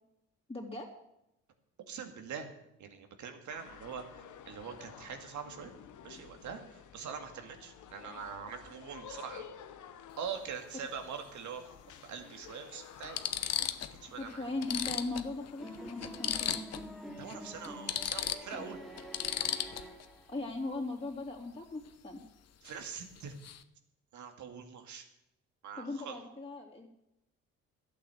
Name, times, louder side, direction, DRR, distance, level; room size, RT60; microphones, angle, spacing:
voice 1, 0.5-0.9 14.2-16.6 20.3-22.2 25.8-26.9, left 2 dB, 20° left, -3 dB, 3.3 m, -38 dB
voice 2, 1.9-2.5 2.8-5.7 6.0-9.5 10.2-13.2 13.6-14.4 17.2-18.8 22.6-23.3 24.1-25.1 25.6-26.2, right 6 dB, 75° right, 5 dB, 2.2 m, -43 dB
sound 1, 3.5-16.4, left 8 dB, 75° left, 1.1 m, -52 dB
sound 2, 10.1-10.3 11.8-11.9 12.5-12.6 13.0-14.0 14.3-14.4 14.6-16.9 17.2-17.3 17.6-20.1 22.7-22.9 23.2-23.6, left 9 dB, 55° left, 0.9 m, -36 dB
sound 3, 15.6-20.5, equal, ahead, 2.6 m, -46 dB
12.5 x 8.6 x 7.8 m, 0.84 s
cardioid pair, 90°, 30 cm